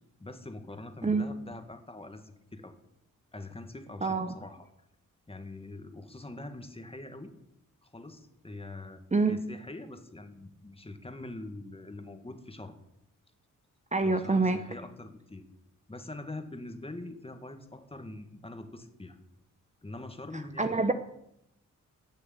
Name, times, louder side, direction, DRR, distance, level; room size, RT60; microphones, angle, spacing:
voice 1, 0.2-2.8 3.3-4.7 5.3-7.3 7.8-9.0 9.3-12.7 14.0-15.4 15.9-19.2 19.8-20.9, left 2 dB, 15° left, 6 dB, 2.0 m, -44 dB
voice 2, 4.0-4.3 9.1-9.4 13.9-14.6 20.6-20.9, right 3 dB, 20° right, 8 dB, 0.9 m, -26 dB
18.0 x 6.8 x 8.6 m, 0.80 s
wide cardioid pair, 100°, 32 cm